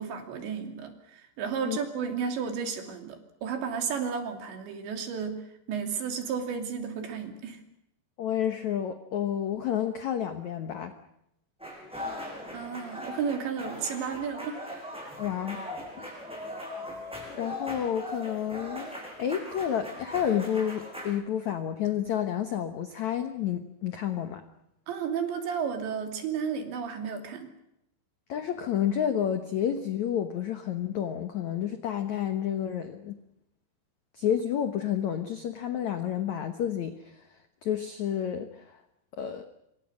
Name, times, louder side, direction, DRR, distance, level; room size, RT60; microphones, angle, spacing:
voice 1, 0.0-7.6 12.5-14.6 15.0-15.1 24.9-27.5, right 6 dB, 70° right, 5 dB, 5.1 m, -33 dB
voice 2, 8.2-10.9 15.2-15.6 16.0-16.2 17.3-18.9 19.2-24.4 28.3-33.2 34.1-38.8 39.1-39.4, left 9 dB, 80° left, 8 dB, 1.6 m, -30 dB
sound 1, 11.6-21.1, left 1 dB, ahead, 7.2 m, -40 dB
26.5 x 25.5 x 6.4 m, 0.82 s
omnidirectional pair, 5.3 m